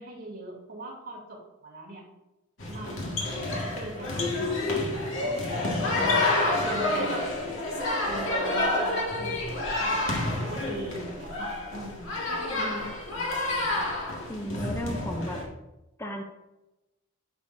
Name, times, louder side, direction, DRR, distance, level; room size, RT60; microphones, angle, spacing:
voice 1, 0.0-2.0 2.7-3.2 3.7-6.1 6.6-7.3 8.0-9.4 9.7-13.8, right 2 dB, 45° right, -3 dB, 2.9 m, -41 dB
sound 1, 2.6-15.4, left 2 dB, 65° left, 1.8 m, -29 dB
voice 2, 12.6-12.9 14.3-15.4 16.0-16.2, equal, 15° left, 3 dB, 0.6 m, -34 dB
9.6 x 6.6 x 2.6 m, 0.99 s
head